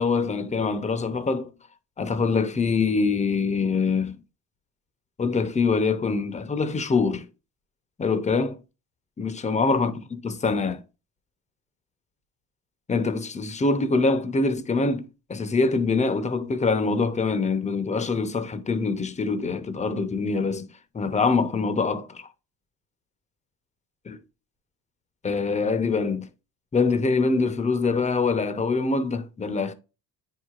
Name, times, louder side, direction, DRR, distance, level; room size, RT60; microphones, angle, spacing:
voice 1, 0.0-1.5 2.0-4.2 5.2-7.2 8.0-8.6 9.2-10.8 12.9-20.7 20.9-22.3 24.1-24.2 25.2-26.3 26.7-29.7, left 4 dB, 15° left, 0.7 m, -24 dB
9.2 x 4.8 x 2.4 m
cardioid pair, 105°, 40 cm